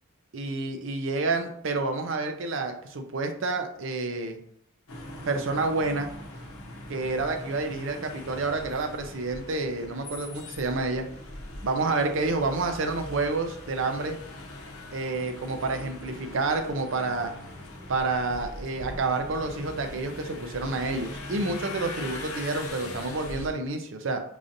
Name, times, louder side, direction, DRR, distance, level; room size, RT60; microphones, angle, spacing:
voice 1, 0.3-4.4 5.3-6.1 6.9-11.1 11.6-14.2 14.9-17.3 17.9-24.2, right 3 dB, 65° right, 5 dB, 0.5 m, -29 dB
sound 1, 4.9-23.5, left 1 dB, 85° left, 0.8 m, -41 dB
4.8 x 2.6 x 2.6 m, 0.67 s
head